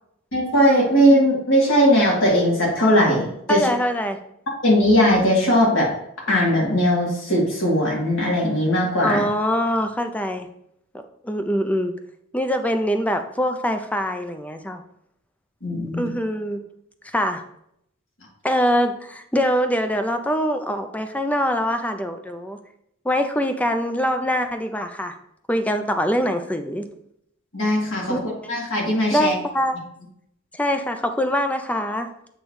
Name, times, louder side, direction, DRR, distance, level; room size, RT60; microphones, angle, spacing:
voice 1, 0.3-3.7 4.6-5.9 6.3-9.2 15.6-16.1 27.5-28.2 28.5-29.3, equal, 70° left, -3 dB, 2.0 m, -19 dB
voice 2, 3.5-4.2 9.0-10.5 11.2-11.9 12.3-14.8 15.9-16.6 17.0-17.4 18.4-22.6 23.0-25.1 25.5-26.9 28.1-28.3 29.1-29.8 30.5-32.1, equal, 5° left, 7 dB, 0.4 m, -23 dB
7.9 x 3.1 x 4.7 m, 0.75 s
head